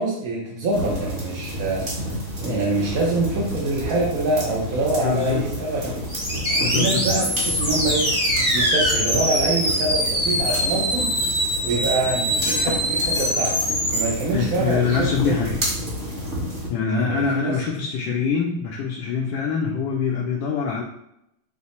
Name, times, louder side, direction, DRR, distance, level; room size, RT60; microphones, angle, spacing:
voice 1, 0.0-6.0 6.5-8.1 8.5-11.1 11.6-13.6 13.9-15.4 16.9-17.6, right 2 dB, 65° right, -4 dB, 0.9 m, -25 dB
sound 1, 0.7-16.7, equal, 35° right, 0.9 m, -30 dB
voice 2, 5.0-5.6 6.6-7.3 14.3-15.6 16.7-20.8, left 5 dB, 75° left, -1 dB, 1.1 m, -24 dB
sound 2, 6.1-14.1, equal, 5° left, 0.6 m, -23 dB
4.8 x 2.0 x 4.1 m, 0.80 s
omnidirectional pair, 2.3 m